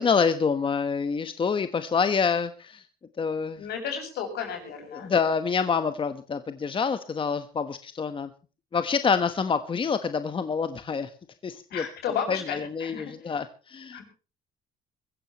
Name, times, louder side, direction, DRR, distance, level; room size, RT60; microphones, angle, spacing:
voice 1, 0.0-2.8 3.2-3.7 4.9-8.3 8.7-11.1 11.4-11.8 12.3-14.0, left 5 dB, 30° left, 10 dB, 1.2 m, -27 dB
voice 2, 3.6-5.1 11.7-13.4 13.9-14.0, left 7 dB, 75° left, 5 dB, 7.6 m, -33 dB
23.0 x 15.0 x 3.0 m, 0.36 s
cardioid pair, 110°, 17 cm